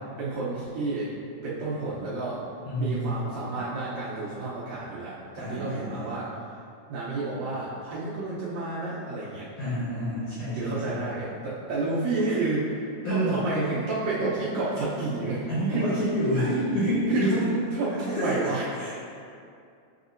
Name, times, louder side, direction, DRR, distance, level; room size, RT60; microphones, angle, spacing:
voice 1, 0.2-1.1 1.4-2.4 2.8-6.3 6.9-9.5 10.5-12.8 13.1-15.4 15.7-15.9 17.1-18.7, right 3 dB, 75° right, -9 dB, 1.8 m, -30 dB
voice 2, 2.6-3.1 5.4-6.2 9.6-11.0 13.0-13.4 15.5-17.4 18.1-18.5 18.7-18.9, equal, 65° left, -10 dB, 1.6 m, -28 dB
7.9 x 2.6 x 2.5 m, 2.4 s
omnidirectional pair, 3.8 m